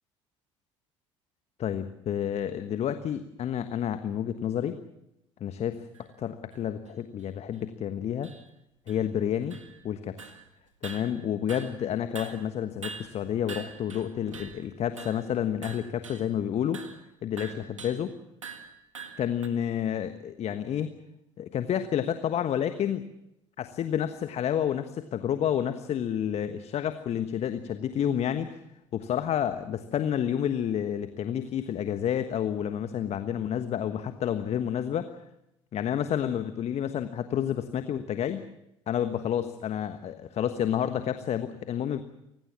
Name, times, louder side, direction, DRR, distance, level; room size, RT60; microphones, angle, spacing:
voice 1, 1.6-4.8 5.4-5.8 6.2-8.3 8.9-9.6 9.8-10.1 10.8-16.9 17.2-18.1 19.2-21.0 21.4-23.0 23.6-28.6 28.9-35.1 35.7-38.4 38.9-42.0, left 9 dB, 40° left, 10 dB, 1.3 m, -30 dB
sound 1, 5.9-6.0 6.5-6.6 7.2-7.3 7.5-7.6 8.2-8.5 8.9-9.9 10.2-10.5 10.8-11.9 12.2-14.7 15.0-15.3 15.6-16.3 16.7-17.0 17.4-18.1 18.4-19.5, right 5 dB, 80° right, 1.7 m, -44 dB
29.5 x 17.0 x 7.4 m, 0.85 s
figure-of-eight pair, 55°, 16 cm